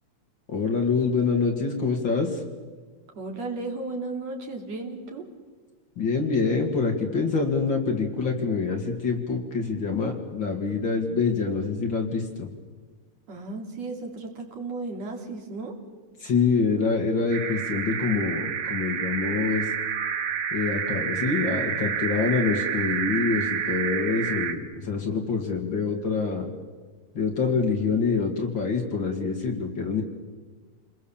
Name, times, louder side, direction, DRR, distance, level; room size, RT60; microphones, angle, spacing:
voice 1, 0.5-2.4 6.0-12.5 16.2-19.7 20.5-26.5 27.1-30.0, left 4 dB, 45° left, 3 dB, 2.5 m, -26 dB
voice 2, 3.2-5.2 13.3-15.7, right 3 dB, 60° right, 1 dB, 3.8 m, -34 dB
sound 1, 17.3-24.5, right 8 dB, 85° right, 2.9 m, -29 dB
28.5 x 21.0 x 7.2 m, 1.4 s
omnidirectional pair, 3.4 m